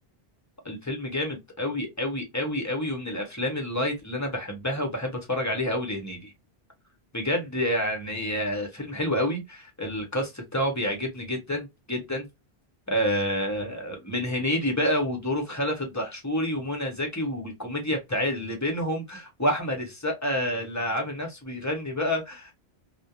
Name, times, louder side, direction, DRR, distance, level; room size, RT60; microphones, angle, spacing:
voice 1, 0.6-6.3 7.1-12.3 12.9-22.5, equal, 20° left, 0.6 m, -28 dB
2.3 x 2.1 x 2.7 m
omnidirectional pair, 1.0 m